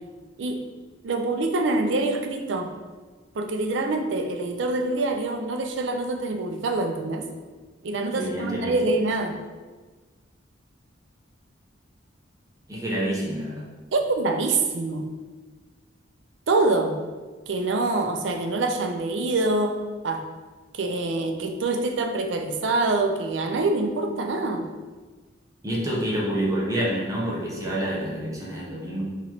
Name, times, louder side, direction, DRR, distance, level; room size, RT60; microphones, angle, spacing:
voice 1, 1.0-2.7 3.3-7.3 7.8-9.4 13.9-15.1 16.5-17.0 17.5-19.8 20.0-20.3 20.7-24.7, right 2 dB, 65° right, 5 dB, 0.5 m, -25 dB
voice 2, 8.1-8.8 12.7-13.6 25.6-29.0, right 1 dB, 20° right, -5 dB, 0.9 m, -28 dB
4.1 x 3.0 x 4.2 m, 1.4 s
head